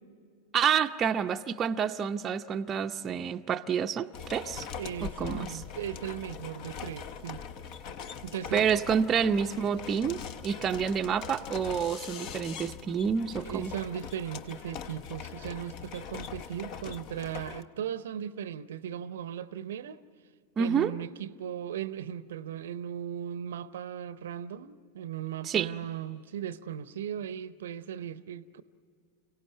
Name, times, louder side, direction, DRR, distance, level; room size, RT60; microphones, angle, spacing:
voice 1, 0.5-4.7 5.0-5.6 8.5-13.7 20.6-20.9 25.4-25.7, right 7 dB, 25° right, 0.6 m, -28 dB
sound 1, 4.1-17.6, left 7 dB, 40° left, 0.9 m, -42 dB
voice 2, 4.7-7.5 8.2-8.6 13.4-20.0 20.6-28.6, right 9 dB, 60° right, 0.7 m, -37 dB
29.5 x 17.0 x 9.8 m
figure-of-eight pair, 90°, 0 cm